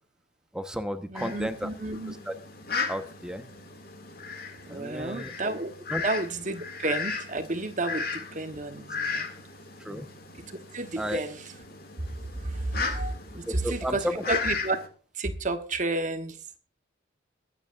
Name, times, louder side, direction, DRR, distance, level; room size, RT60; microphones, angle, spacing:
voice 1, 0.5-1.7 2.1-2.4 2.9-3.4 4.7-5.3 5.9-6.0 9.8-10.1 11.0-11.2 13.5-14.2, equal, 5° right, 8 dB, 1.2 m, -33 dB
Fowl, 1.1-14.9, left 5 dB, 50° left, 2.5 m, -36 dB
voice 2, 1.1-2.2 4.7-5.7 6.0-9.3 10.7-11.5 12.4-14.8 15.1-16.4, right 2 dB, 40° right, 8 dB, 1.2 m, -31 dB
23.0 x 9.1 x 2.6 m, 0.40 s
head